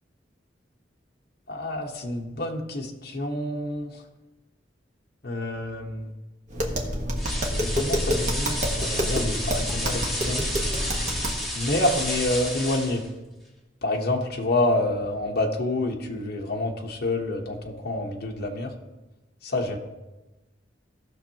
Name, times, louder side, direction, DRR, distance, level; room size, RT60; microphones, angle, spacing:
voice 1, 1.5-3.9 5.2-6.1 7.5-10.5 11.5-13.0 13.8-18.7 19.4-19.8, left 2 dB, 55° left, 0 dB, 1.1 m, -28 dB
Tap, 6.5-11.4, equal, 40° right, 1.3 m, -28 dB
sound 1, 7.2-13.1, left 1 dB, ahead, 1.9 m, -31 dB
17.0 x 6.3 x 2.9 m, 1.1 s
head